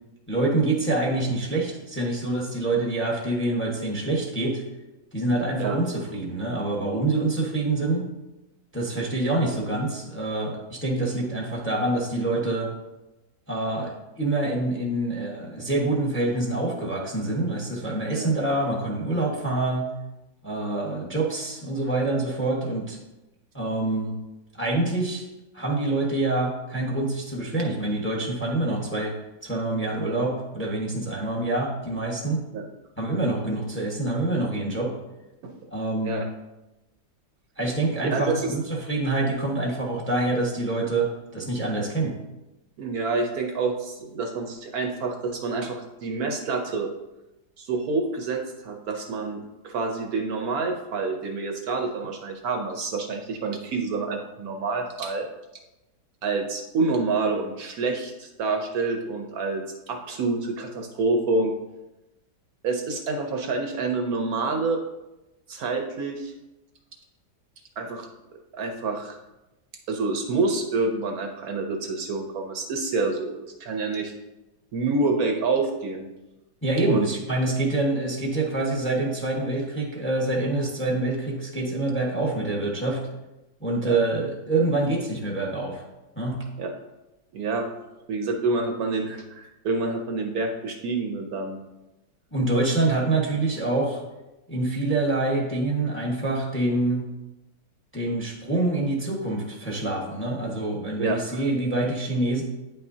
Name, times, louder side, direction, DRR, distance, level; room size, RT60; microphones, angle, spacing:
voice 1, 0.3-4.6 5.1-8.0 8.7-12.7 13.5-19.9 20.4-23.0 23.5-24.1 24.6-25.2 25.5-29.1 29.4-32.4 33.0-34.9 35.7-36.2 37.6-42.1 76.6-83.0 83.6-85.8 86.2-86.4 92.3-94.0 94.5-97.0 97.9-102.4, right 2 dB, 10° left, -2 dB, 1.0 m, -26 dB
voice 2, 38.1-38.5 42.8-46.9 47.6-55.3 56.2-61.5 62.6-64.8 65.5-66.3 67.8-68.1 68.5-69.2 69.9-74.1 74.7-76.1 76.9-77.1 83.8-84.0 86.6-86.7 87.3-87.7 88.1-91.6 101.0-101.4, right 3 dB, 70° right, 3 dB, 1.1 m, -27 dB
9.3 x 5.5 x 2.7 m, 1.0 s
omnidirectional pair, 1.8 m